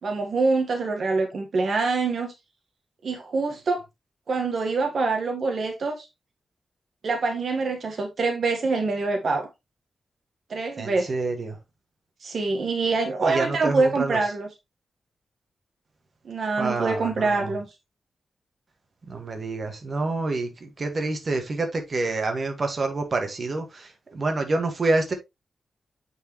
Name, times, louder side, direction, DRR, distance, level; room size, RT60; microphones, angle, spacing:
voice 1, 0.0-2.3 3.0-3.8 4.3-6.1 7.0-9.5 10.5-11.1 12.2-14.5 16.2-17.7, right 3 dB, 60° right, 1.5 m, -25 dB
voice 2, 10.8-11.6 13.2-14.2 16.6-17.5 19.1-25.1, right 3 dB, 40° right, 1.7 m, -27 dB
9.0 x 4.7 x 3.1 m
wide cardioid pair, 120°, 0 cm